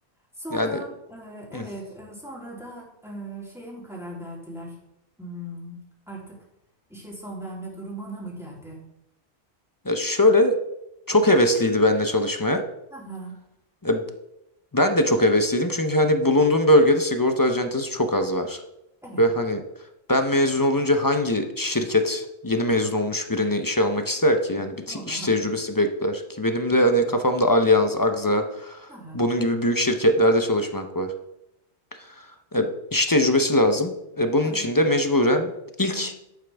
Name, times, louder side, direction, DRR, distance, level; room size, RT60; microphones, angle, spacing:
voice 1, 0.4-4.8 5.2-5.8 6.1-6.4 6.9-8.9 12.9-13.4 19.0-19.2 24.5-25.5 28.9-29.2 34.4-34.9 35.9-36.1, right 1 dB, ahead, -4 dB, 3.2 m, -39 dB
voice 2, 9.8-10.6 11.1-12.6 13.8-14.0 14.7-18.6 19.2-19.6 20.1-28.9 29.1-31.1 32.2-32.3 32.5-35.5 35.8-36.1, left 1 dB, 20° left, 6 dB, 0.6 m, -21 dB
11.5 x 8.7 x 3.4 m, 0.85 s
omnidirectional pair, 1.2 m